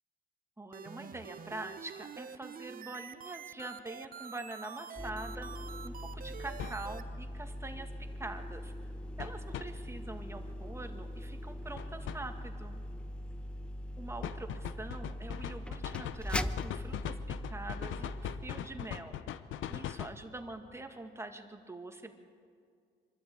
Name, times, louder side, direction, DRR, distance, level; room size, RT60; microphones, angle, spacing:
voice 1, 0.6-8.7 9.2-12.8 14.0-19.2 19.7-22.1, right 2 dB, 15° right, 5 dB, 2.1 m, -44 dB
sound 1, 0.7-7.0, right 7 dB, 45° right, 0.8 m, -47 dB
sound 2, 5.0-18.5, equal, 5° left, 0.7 m, -41 dB
sound 3, 5.1-5.2 6.6-6.8 9.2-9.7 11.8-12.2 14.2-20.2, left 11 dB, 75° left, 0.8 m, -39 dB
24.5 x 13.0 x 8.6 m, 2.2 s
cardioid pair, 90°, 20 cm